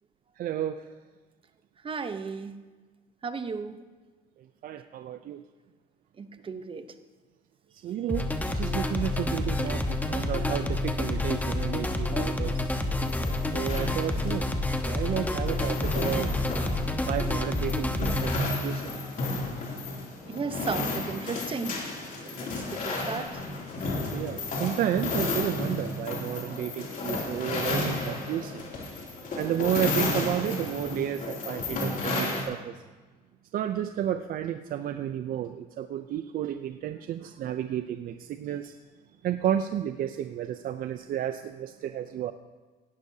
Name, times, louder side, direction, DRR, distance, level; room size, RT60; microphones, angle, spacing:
voice 1, 0.4-0.9 4.6-5.4 7.8-12.6 13.5-14.5 14.8-16.3 17.1-18.9 24.0-28.6 29.4-32.7 33.5-38.7 39.2-42.3, right 10 dB, 60° right, 9 dB, 0.5 m, -32 dB
voice 2, 1.8-2.5 3.2-3.8 6.2-6.9 20.3-21.8 22.2-23.4, right 5 dB, 30° right, 10 dB, 0.8 m, -35 dB
sound 1, 8.1-18.4, left 2 dB, 10° left, 1.1 m, -29 dB
sound 2, 12.5-32.4, left 2 dB, 55° left, 2.9 m, -33 dB
17.5 x 11.5 x 2.8 m, 1.3 s
cardioid pair, 110°, 17 cm